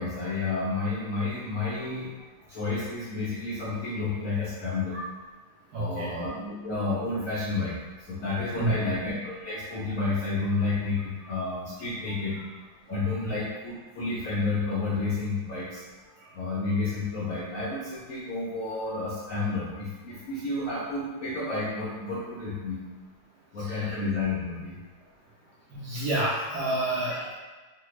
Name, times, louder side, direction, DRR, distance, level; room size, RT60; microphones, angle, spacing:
voice 1, 0.0-5.0 5.7-7.7 8.1-12.4 12.9-15.8 16.1-22.8 23.5-24.8, left 3 dB, 85° left, -8 dB, 0.7 m, -30 dB
voice 2, 5.7-6.1 8.5-9.0 16.2-16.3 23.6-24.0 25.7-27.3, right 2 dB, 70° right, -7 dB, 0.9 m, -29 dB
3.2 x 2.2 x 3.1 m, 1.3 s
omnidirectional pair, 2.3 m